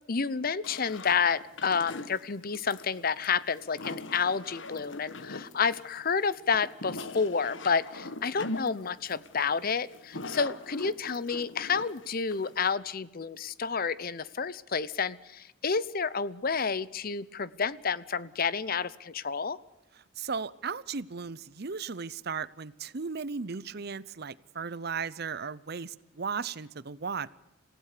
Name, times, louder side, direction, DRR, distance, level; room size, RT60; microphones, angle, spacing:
voice 1, 0.1-19.6, left 5 dB, 45° left, 18 dB, 0.8 m, -30 dB
sound 1, 0.6-12.8, left 2 dB, 65° left, 1.3 m, -41 dB
voice 2, 20.2-27.3, right 5 dB, 50° right, 19 dB, 0.7 m, -36 dB
27.5 x 16.5 x 6.7 m, 0.89 s
head